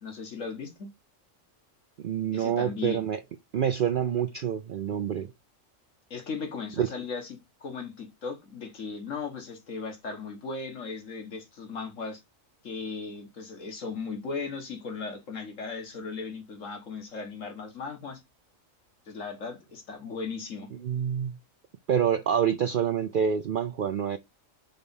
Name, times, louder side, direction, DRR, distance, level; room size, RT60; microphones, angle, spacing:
voice 1, 0.0-0.9 2.3-3.0 6.1-12.2 12.6-18.2 19.1-20.7, left 4 dB, 70° left, 1.9 m, -37 dB
voice 2, 2.0-3.2 3.5-5.3 6.8-6.9 20.8-21.4 21.9-24.2, right 8 dB, 65° right, 0.5 m, -27 dB
5.2 x 4.0 x 5.3 m
omnidirectional pair, 1.4 m